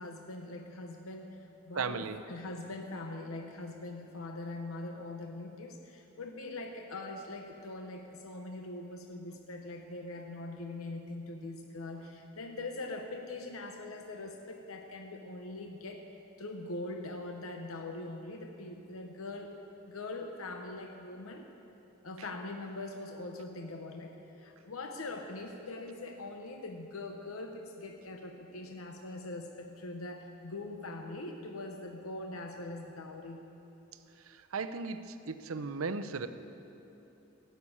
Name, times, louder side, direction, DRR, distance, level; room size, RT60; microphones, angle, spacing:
voice 1, 0.0-16.0 16.4-19.5 19.9-21.4 22.0-33.4, left 2 dB, 90° left, 3 dB, 0.9 m, -42 dB
voice 2, 1.8-2.2 34.2-36.3, right 4 dB, 85° right, 10 dB, 0.7 m, -36 dB
16.5 x 6.8 x 8.6 m, 3.0 s
head